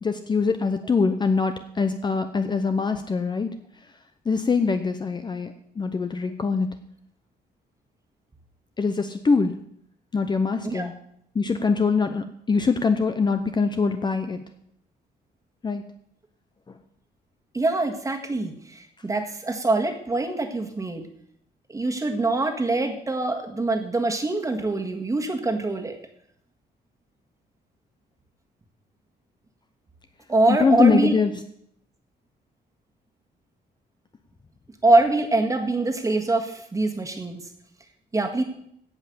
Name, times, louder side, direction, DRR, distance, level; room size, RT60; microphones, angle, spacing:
voice 1, 0.0-3.5 4.3-6.7 8.8-9.5 10.1-10.9 11.3-14.4 15.6-15.8 30.5-31.3, left 4 dB, 25° left, 8 dB, 0.7 m, -23 dB
voice 2, 17.5-21.1 21.7-26.0 30.3-31.1 34.8-37.4 38.1-38.4, right 2 dB, 20° right, 4 dB, 1.7 m, -24 dB
16.5 x 5.7 x 6.9 m, 0.70 s
cardioid pair, 145°, 18 cm